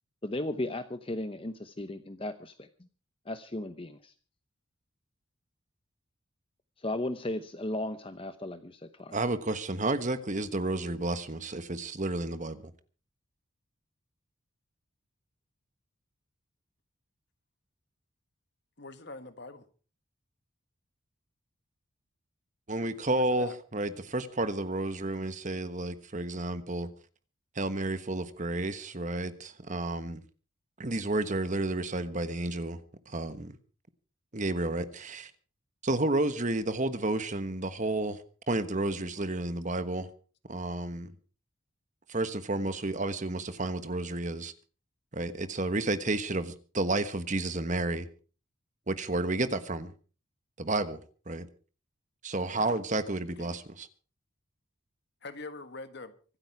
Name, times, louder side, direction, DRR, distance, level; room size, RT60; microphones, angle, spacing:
voice 1, 0.2-2.7 3.3-4.1 6.8-9.2, left 1 dB, 25° left, 0.8 m, -35 dB
voice 2, 9.1-12.7 22.7-26.9 27.5-30.2 30.8-32.8 33.1-33.6 34.3-35.3 35.8-40.1 40.5-41.1 42.1-44.5 45.1-48.1 48.9-49.9 50.6-51.0 51.3-51.5 52.2-53.9, right 2 dB, 35° right, 1.3 m, -31 dB
voice 3, 18.8-19.7 22.8-23.6 53.4-53.6 55.2-56.1, left 3 dB, 55° left, 1.6 m, -44 dB
25.0 x 8.9 x 4.9 m
head